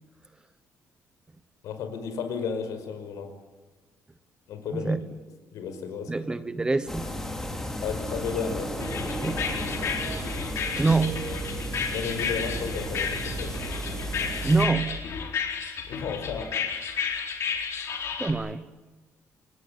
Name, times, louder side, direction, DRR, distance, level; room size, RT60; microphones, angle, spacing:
voice 1, 1.6-3.3 4.5-4.9 5.5-6.2 7.8-8.8 9.8-10.0 11.9-13.6 15.9-16.6, left 6 dB, 90° left, 8 dB, 5.5 m, -33 dB
voice 2, 6.1-7.2 9.2-9.4 10.6-11.4 14.4-14.9 18.2-18.7, right 3 dB, 15° right, 13 dB, 1.0 m, -25 dB
sound 1, 6.9-14.7, left 1 dB, 10° left, 3.5 m, -35 dB
sound 2, 8.1-15.0, right 7 dB, 70° right, 4.1 m, -38 dB
sound 3, 8.8-18.3, left 6 dB, 55° left, 4.4 m, -32 dB
29.0 x 18.5 x 8.8 m, 1.2 s
cardioid pair, 165°, 6 cm